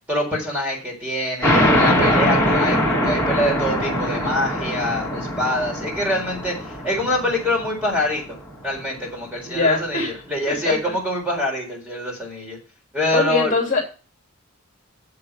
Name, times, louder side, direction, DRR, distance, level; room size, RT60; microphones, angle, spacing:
voice 1, 0.1-6.5 6.8-8.4 8.6-12.6 12.9-13.5, left 1 dB, 5° right, -2 dB, 4.3 m, -25 dB
sound 1, 1.4-8.6, left 1 dB, 10° left, 3.5 m, -22 dB
voice 2, 9.4-10.2 10.5-10.7 13.1-13.8, left 3 dB, 35° left, 1 dB, 3.0 m, -22 dB
7.8 x 7.7 x 6.8 m, 0.35 s
head